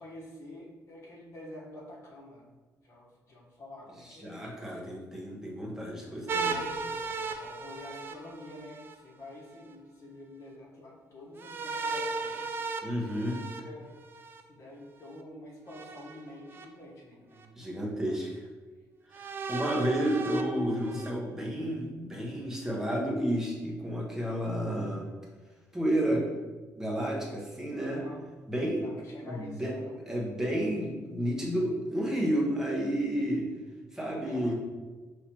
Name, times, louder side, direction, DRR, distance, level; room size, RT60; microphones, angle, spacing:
voice 1, 0.0-2.5 2.8-4.8 5.9-12.5 13.3-14.2 14.5-17.5 17.8-18.2 27.9-28.2 28.8-30.0 34.2-34.5, left 1 dB, 50° left, -4 dB, 1.3 m, -48 dB
voice 2, 4.0-6.6 12.8-13.4 17.6-18.4 19.1-25.1 25.7-26.3 26.8-28.0 28.5-28.9 29.2-29.7 30.1-33.5 33.9-34.5, equal, 10° right, -3 dB, 1.0 m, -31 dB
sound 1, 6.3-8.9 11.4-14.4 15.7-16.6 17.4-17.5 19.1-21.1, right 4 dB, 35° right, 0.4 m, -36 dB
5.5 x 3.2 x 2.9 m, 1.3 s
cardioid pair, 140°, 6 cm